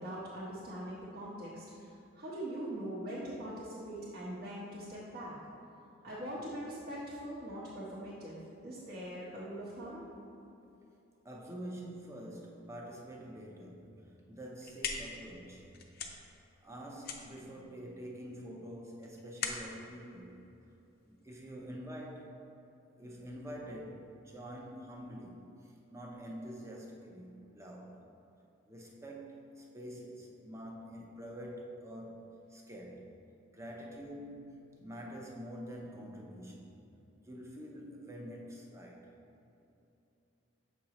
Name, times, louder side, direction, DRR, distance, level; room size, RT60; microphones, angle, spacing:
voice 1, 0.0-5.3 6.0-8.4 8.6-10.0, right 1 dB, 50° right, -9 dB, 1.0 m, -42 dB
voice 2, 11.2-15.9 16.6-20.4 21.0-22.5 22.9-28.1 28.7-33.1 33.5-36.7 37.2-39.1, equal, 15° right, -1 dB, 0.6 m, -46 dB
sound 1, 14.4-21.2, left 5 dB, 50° left, 0.5 m, -43 dB
7.1 x 5.3 x 2.9 m, 2.9 s
head